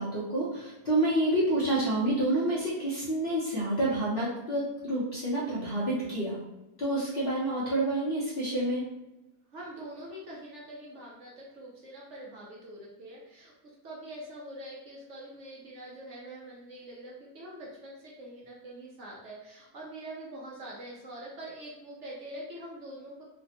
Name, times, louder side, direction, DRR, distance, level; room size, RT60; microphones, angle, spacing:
voice 1, 0.0-6.4 6.8-8.9, right 1 dB, 50° left, -7 dB, 0.7 m, -28 dB
voice 2, 9.5-23.2, right 1 dB, 60° right, -4 dB, 0.8 m, -44 dB
3.3 x 2.1 x 2.7 m, 1.0 s
omnidirectional pair, 1.6 m